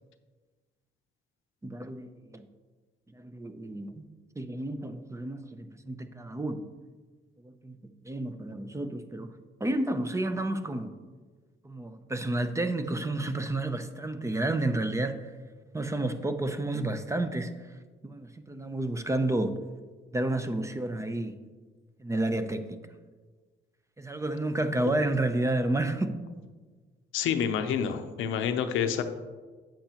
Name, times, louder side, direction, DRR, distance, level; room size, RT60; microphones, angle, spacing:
voice 1, 1.6-2.4 3.1-4.0 4.4-6.6 7.4-7.8 8.0-9.3 9.6-11.0 11.6-15.3 15.7-17.7 18.0-19.6 20.1-21.3 22.0-22.8 24.0-26.2, right 2 dB, 15° right, 9 dB, 0.6 m, -31 dB
voice 2, 27.1-29.0, left 8 dB, 85° left, 8 dB, 0.6 m, -28 dB
8.7 x 7.8 x 2.9 m, 1.4 s
cardioid pair, 90°, 20 cm